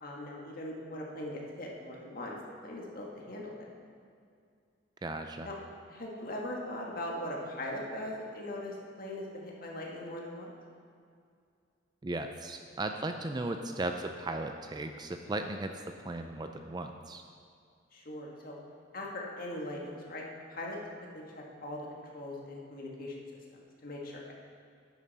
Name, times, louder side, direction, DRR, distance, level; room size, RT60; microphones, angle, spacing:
voice 1, 0.0-2.4 2.6-3.5 5.4-5.5 5.9-10.5 17.9-18.6 18.9-20.2 20.5-20.8 21.1-21.2 21.6-21.8 22.1-23.1 23.5-24.3, left 1 dB, 45° left, -2 dB, 1.7 m, -40 dB
voice 2, 5.0-5.5 12.0-17.2, right 2 dB, 20° right, 6 dB, 0.4 m, -36 dB
11.0 x 9.1 x 4.2 m, 2.3 s
head